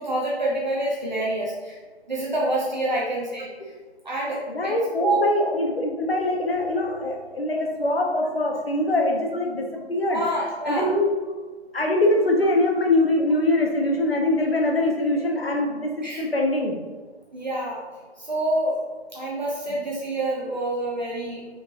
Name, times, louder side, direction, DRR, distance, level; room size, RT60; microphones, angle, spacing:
voice 1, 0.0-1.7 2.1-3.5 4.0-4.7 5.0-5.2 10.1-10.9 16.0-16.2 17.3-17.8 18.2-18.8 19.1-21.4, right 1 dB, 40° right, -5 dB, 1.1 m, -27 dB
voice 2, 4.5-10.2 10.6-11.1 11.7-16.8, left 1 dB, 60° left, 1 dB, 1.3 m, -23 dB
5.1 x 4.0 x 4.6 m, 1.4 s
figure-of-eight pair, 165°, 33 cm